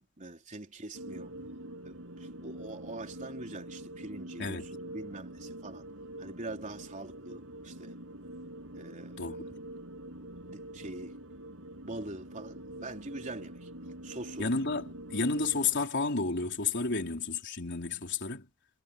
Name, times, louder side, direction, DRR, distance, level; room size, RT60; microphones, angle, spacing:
voice 1, 0.0-1.3 1.8-5.9 6.2-8.0 8.8-9.4 10.0-10.2 10.4-11.2 11.9-13.7 14.0-14.5 16.9-17.1, right 2 dB, 35° right, 3.8 m, -44 dB
sound 1, 0.9-15.9, right 1 dB, 65° right, 6.7 m, -45 dB
voice 2, 14.4-18.5, left 4 dB, 55° left, 4.3 m, -31 dB
head